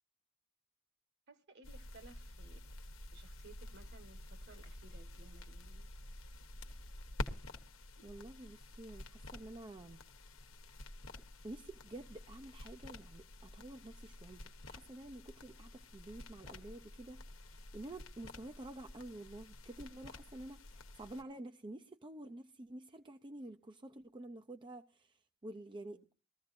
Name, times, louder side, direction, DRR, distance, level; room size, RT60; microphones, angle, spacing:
voice 1, 1.3-2.6 3.1-5.9 25.9-26.0, right 3 dB, 55° right, 1.5 m, -59 dB
sound 1, 1.6-21.2, left 1 dB, 75° left, 1.1 m, -50 dB
voice 2, 8.0-10.0 11.4-26.1, right 1 dB, 25° right, 0.5 m, -50 dB
20.0 x 14.5 x 2.6 m
head